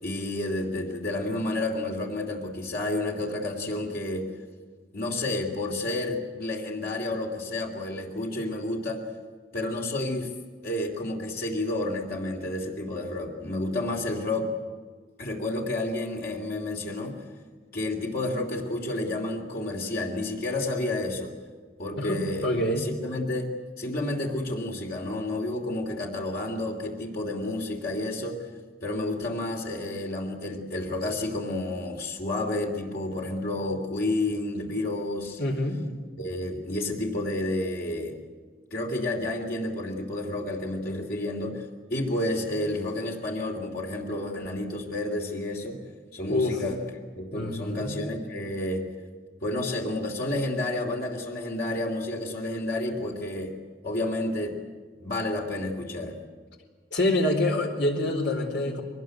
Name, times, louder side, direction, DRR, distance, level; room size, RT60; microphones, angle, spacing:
voice 1, 0.0-4.3 4.9-9.0 9.5-10.3 10.6-14.5 15.2-17.2 17.7-21.3 21.8-23.5 23.8-28.5 28.8-35.4 36.2-38.2 38.7-45.8 46.1-46.8 47.1-48.9 49.4-53.5 53.8-54.6 55.0-56.2, left 1 dB, 60° left, 0 dB, 3.0 m, -30 dB
voice 2, 22.0-22.9 35.4-35.8 46.3-46.6 47.3-48.0 56.9-58.8, left 1 dB, 85° left, 3 dB, 4.2 m, -26 dB
23.0 x 20.0 x 9.2 m, 1.5 s
head